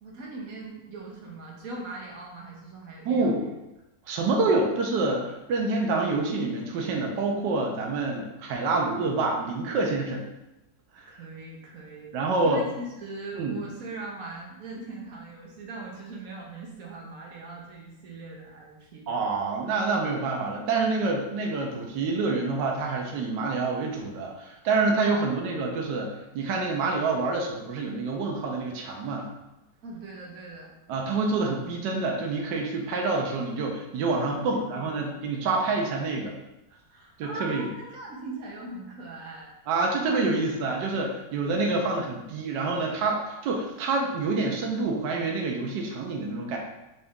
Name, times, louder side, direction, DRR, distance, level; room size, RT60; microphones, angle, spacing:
voice 1, 0.0-3.5 11.1-12.2 12.4-19.1 25.1-25.5 29.8-30.8 34.5-35.2 36.9-39.5, right 2 dB, 55° right, -2 dB, 1.2 m, -40 dB
voice 2, 3.0-3.4 4.1-10.3 10.9-11.1 12.1-12.6 13.4-13.6 19.1-29.3 30.9-36.3 37.2-37.7 39.7-46.6, right 3 dB, 75° right, 0 dB, 1.3 m, -27 dB
4.1 x 3.4 x 3.6 m, 0.95 s
omnidirectional pair, 2.0 m